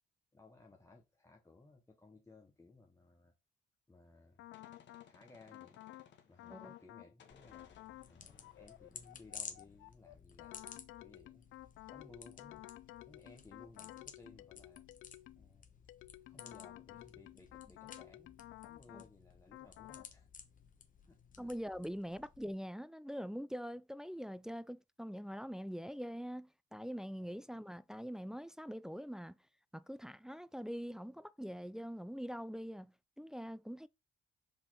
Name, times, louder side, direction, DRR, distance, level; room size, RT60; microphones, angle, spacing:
voice 1, 0.3-3.3 3.9-4.4 5.1-5.8 6.3-7.7 8.1-10.6 11.0-11.4 11.9-14.8 15.4-15.6 16.3-18.3 18.6-20.3 21.1-21.5 22.1-22.2 27.2-27.5, left 3 dB, 15° left, 1.2 m, -60 dB
Gunshot gunfire, 4.1-6.9 7.2-9.9, left 8 dB, 65° left, 1.5 m, -65 dB
sound 1, 4.4-5.1 5.5-6.1 6.4-7.1 7.5-8.1 8.4-15.5 15.9-19.1 19.5-20.1, left 16 dB, 80° left, 0.5 m, -53 dB
sound 2, 7.3-22.5, left 6 dB, 40° left, 1.2 m, -55 dB
voice 2, 21.4-29.4 29.7-33.9, equal, 5° right, 0.3 m, -44 dB
5.1 x 4.1 x 4.5 m
cardioid pair, 90°, 20 cm